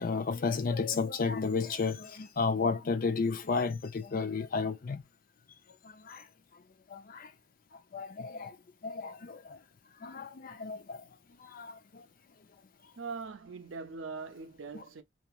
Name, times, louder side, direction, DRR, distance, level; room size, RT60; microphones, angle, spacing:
voice 1, 0.0-5.0 5.8-6.2 6.9-7.3 7.9-8.5 8.8-9.6 10.0-11.0 11.4-12.0 14.7-14.8, left 4 dB, 45° left, 0.4 m, -32 dB
voice 2, 13.0-15.0, right 4 dB, 75° right, 0.5 m, -41 dB
2.9 x 2.4 x 2.2 m
head